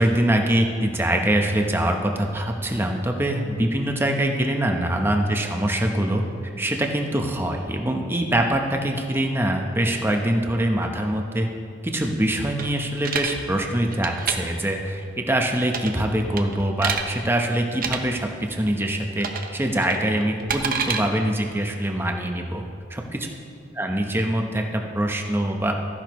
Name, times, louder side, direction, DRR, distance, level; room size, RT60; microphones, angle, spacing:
voice 1, 0.0-6.2 6.6-11.5 11.8-22.6 22.9-23.3 23.7-25.7, right 1 dB, 10° right, 2 dB, 0.8 m, -24 dB
sound 1, 12.6-13.3 13.9-14.4 15.7-16.0 16.4-17.0 17.7-18.0 19.2-19.5 19.8-21.0, right 6 dB, 50° right, 0.7 m, -27 dB
13.5 x 10.5 x 3.1 m, 2.3 s
head